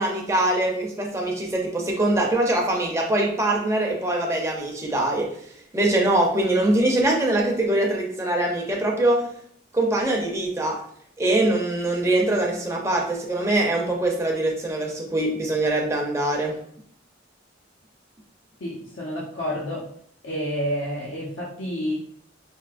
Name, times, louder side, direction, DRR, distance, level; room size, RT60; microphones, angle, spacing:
voice 1, 0.0-5.3 5.7-9.3 9.7-10.8 11.2-16.6, right 1 dB, 15° right, -1 dB, 0.6 m, -23 dB
voice 2, 18.6-19.8 20.2-21.9, equal, 80° left, -5 dB, 0.8 m, -29 dB
4.5 x 2.8 x 2.5 m, 0.64 s
head